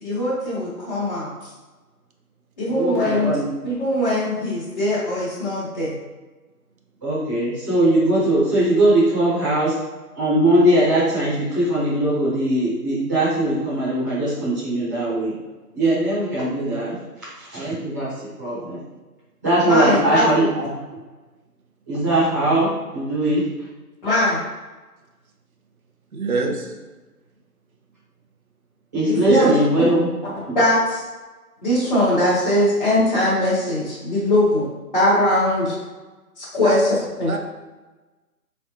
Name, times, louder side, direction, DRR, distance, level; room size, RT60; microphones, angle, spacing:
voice 1, 0.0-1.3 2.6-3.3 3.6-5.9 19.6-20.2 24.0-24.4 29.1-29.5 30.5-31.0 31.6-34.6 34.9-35.7 36.4-36.9 37.2-37.3, left 1 dB, 30° left, -11 dB, 1.1 m, -20 dB
voice 2, 2.6-3.4 7.0-9.8 10.1-15.3 15.7-16.9 17.4-18.1 18.4-18.8 19.4-20.7 21.9-23.4 28.9-30.1 30.5-30.6, right 1 dB, 10° right, -14 dB, 1.1 m, -20 dB
voice 3, 26.1-26.8 29.3-29.5 36.6-36.8 37.2-37.4, right 3 dB, 60° right, 2 dB, 0.8 m, -24 dB
4.3 x 3.4 x 2.5 m, 1.2 s
figure-of-eight pair, 160°, 47 cm